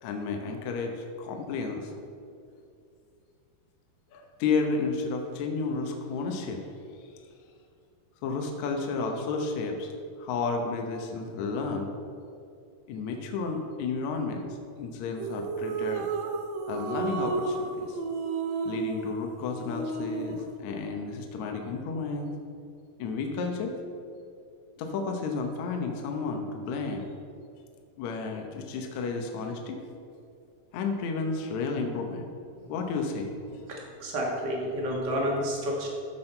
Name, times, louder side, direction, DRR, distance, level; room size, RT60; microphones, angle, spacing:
voice 1, 0.0-1.9 4.1-6.6 8.2-9.9 10.2-11.9 12.9-14.5 14.8-16.1 16.7-18.0 18.7-22.3 23.0-23.8 24.8-27.1 28.0-29.8 30.7-32.3 32.7-33.3, left 4 dB, 70° left, 3 dB, 1.9 m, -32 dB
sound 1, 15.2-20.5, right 4 dB, 75° right, 1.7 m, -32 dB
voice 2, 33.7-35.9, equal, 40° right, -2 dB, 1.8 m, -30 dB
13.5 x 6.2 x 4.4 m, 2.4 s
omnidirectional pair, 4.0 m